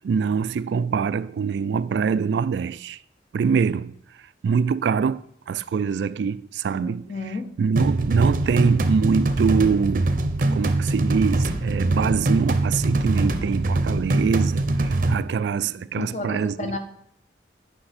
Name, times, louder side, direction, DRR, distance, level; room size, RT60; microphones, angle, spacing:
voice 1, 0.0-3.0 3.3-3.9 4.4-7.1 7.6-16.7, right 6 dB, 75° right, 0.3 m, -24 dB
voice 2, 6.7-7.5 15.9-16.8, left 3 dB, 40° left, 1.0 m, -32 dB
sound 1, 7.8-15.1, right 2 dB, 45° right, 0.7 m, -23 dB
9.7 x 5.7 x 4.3 m
head